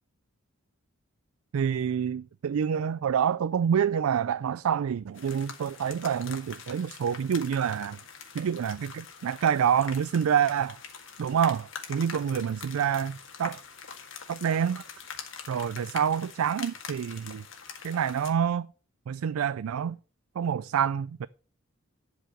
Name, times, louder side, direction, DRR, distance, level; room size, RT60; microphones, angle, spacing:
voice 1, 1.5-8.0 8.3-10.8 11.2-13.6 14.3-14.8 15.5-17.4 17.8-18.7 19.1-20.0 20.4-21.3, right 8 dB, 90° right, 0.4 m, -27 dB
sound 1, 5.1-18.3, left 6 dB, 65° left, 1.9 m, -44 dB
11.5 x 4.9 x 6.4 m
head